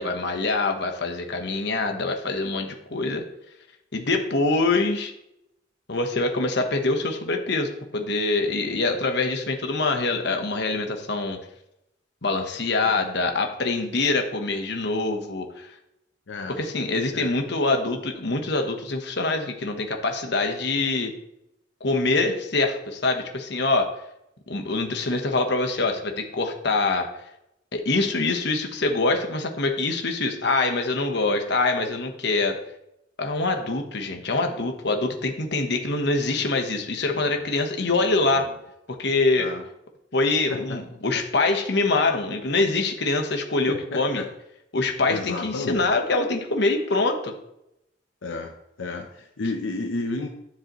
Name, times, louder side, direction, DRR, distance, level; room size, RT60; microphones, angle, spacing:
voice 1, 0.0-3.2 3.9-5.1 5.9-11.4 12.2-15.7 16.6-21.1 21.8-23.9 24.5-27.1 27.7-32.6 33.2-38.5 39.0-39.5 40.1-44.2 44.7-47.3, left 3 dB, 60° left, 4 dB, 1.2 m, -24 dB
voice 2, 16.3-16.6 17.1-17.3 37.1-37.5 37.8-38.5 39.4-39.6 40.5-41.2 43.7-44.3 45.1-45.9 48.2-50.3, left 3 dB, 90° left, 4 dB, 0.8 m, -33 dB
10.5 x 7.3 x 3.1 m, 0.81 s
head